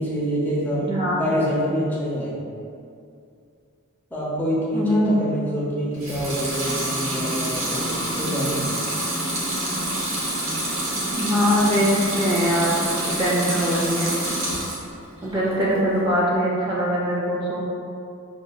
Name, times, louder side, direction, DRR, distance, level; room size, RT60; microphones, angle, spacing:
voice 1, 0.0-0.9 1.2-2.4 4.1-8.8, equal, 10° left, -7 dB, 0.7 m, -26 dB
voice 2, 0.7-1.2 4.7-5.1 11.1-14.1 15.2-17.6, equal, 25° right, -6 dB, 0.5 m, -22 dB
Water tap faucet / Sink (filling or washing) / Liquid, 5.9-14.9 15.3-16.0, right 1 dB, 75° right, 0.9 m, -27 dB
6.0 x 2.6 x 2.3 m, 2.4 s
head